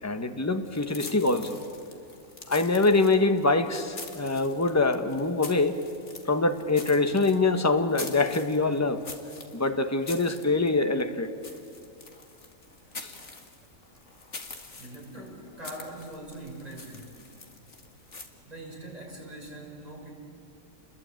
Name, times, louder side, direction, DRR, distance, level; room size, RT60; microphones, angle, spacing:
voice 1, 0.0-1.6 2.5-5.8 6.2-9.0 9.5-11.3 13.0-13.1, left 3 dB, 10° left, 7 dB, 1.1 m, -24 dB
sound 1, 0.7-18.3, left 3 dB, 50° left, 2.3 m, -45 dB
voice 2, 14.8-17.3 18.4-20.1, right 1 dB, 25° right, -2 dB, 6.2 m, -42 dB
29.0 x 21.5 x 9.1 m, 2.5 s
omnidirectional pair, 1.6 m